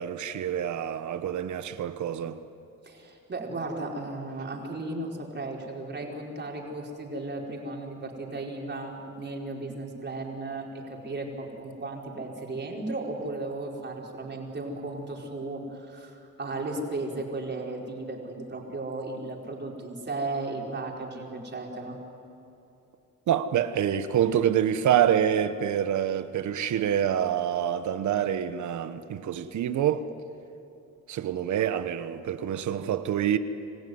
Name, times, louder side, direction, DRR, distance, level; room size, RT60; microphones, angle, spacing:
voice 1, 0.0-2.4 23.3-30.0 31.1-33.4, right 9 dB, 70° right, 1.2 m, -26 dB
voice 2, 2.8-22.0, right 2 dB, 35° right, 5.1 m, -35 dB
27.5 x 15.5 x 9.6 m
cardioid pair, 90°, 30 cm